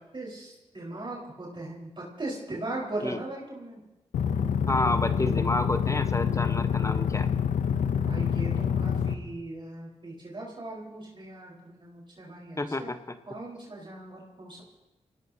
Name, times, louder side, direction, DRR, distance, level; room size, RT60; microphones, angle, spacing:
voice 1, 0.0-3.8 7.9-12.9 13.3-14.6, right 2 dB, 40° right, -4 dB, 4.6 m, -39 dB
sound 1, 4.1-9.1, left 7 dB, 85° left, 0.7 m, -26 dB
voice 2, 4.7-7.3 12.6-13.2, left 2 dB, 25° left, 9 dB, 1.1 m, -29 dB
24.0 x 17.5 x 2.9 m, 1.1 s
supercardioid pair, 40°, 12 cm